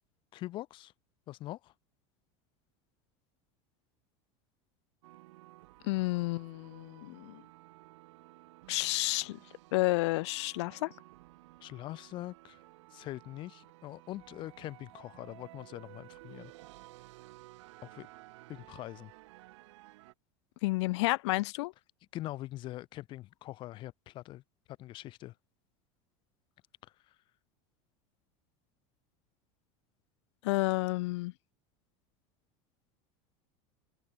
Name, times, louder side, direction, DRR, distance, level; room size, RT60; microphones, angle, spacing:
voice 1, 0.3-0.9 1.3-1.7 11.6-12.6 12.9-16.5 17.8-18.1 18.5-19.1 22.1-24.4 24.7-25.3 26.8-27.1, left 16 dB, 35° left, 2.1 m, -43 dB
sound 1, 5.0-20.1, right 19 dB, 90° right, 4.2 m, -55 dB
voice 2, 5.8-7.4 8.7-9.4 9.7-10.9 20.6-21.7 30.4-31.3, left 21 dB, 70° left, 0.8 m, -30 dB
open air
cardioid pair, 180°, 15 cm